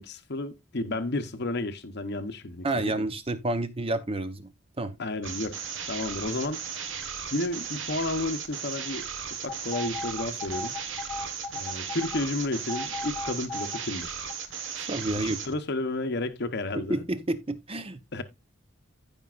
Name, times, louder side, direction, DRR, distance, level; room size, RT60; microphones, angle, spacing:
voice 1, 0.0-2.9 5.0-6.8 7.3-10.7 11.5-14.2 15.1-17.1 18.1-18.2, left 2 dB, 50° left, 0.9 m, -32 dB
voice 2, 2.6-4.5 4.8-5.0 14.9-15.4 16.7-18.0, right 2 dB, 25° right, 0.8 m, -29 dB
sound 1, 5.2-15.5, right 7 dB, 60° right, 1.5 m, -36 dB
sound 2, 9.5-12.2 12.7-13.8 14.3-14.4, left 3 dB, 15° left, 1.4 m, -36 dB
15.5 x 5.3 x 2.4 m
head